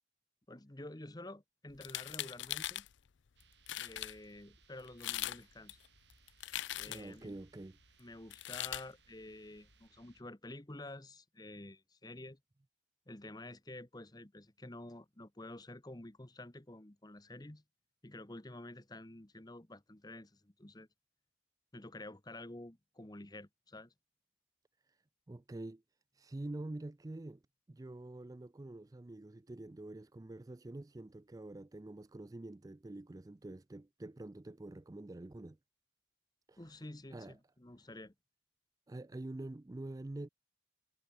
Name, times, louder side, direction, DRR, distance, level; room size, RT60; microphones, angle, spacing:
voice 1, 0.5-2.9 3.7-5.8 6.7-7.4 8.0-12.4 13.1-17.6 18.0-20.9 21.7-23.9 36.6-38.1, left 2 dB, 20° left, 1.1 m, -50 dB
sound 1, 1.7-2.9 3.4-3.5 3.7-4.1 4.9-5.4 5.7-7.2 8.3-8.8, left 14 dB, 70° left, 0.5 m, -40 dB
sound 2, 3.4-10.2, right 4 dB, 60° right, 4.2 m, -67 dB
voice 2, 6.9-7.8 24.9-25.0 25.3-25.8 26.1-27.4 27.7-35.6 36.5-36.8 37.1-37.4 38.9-40.3, right 2 dB, 20° right, 0.4 m, -46 dB
head